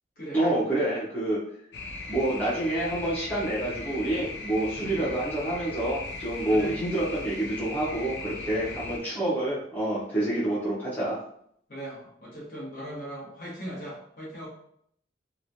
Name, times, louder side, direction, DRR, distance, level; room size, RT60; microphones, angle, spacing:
voice 1, 0.3-1.4 2.1-11.2, right 1 dB, 10° left, -10 dB, 0.7 m, -28 dB
sound 1, 1.7-9.0, left 3 dB, 80° left, 0.5 m, -38 dB
voice 2, 4.8-5.1 6.5-6.8 8.6-8.8 11.7-14.5, right 1 dB, 50° left, -5 dB, 1.1 m, -39 dB
2.9 x 2.3 x 2.7 m, 0.67 s
head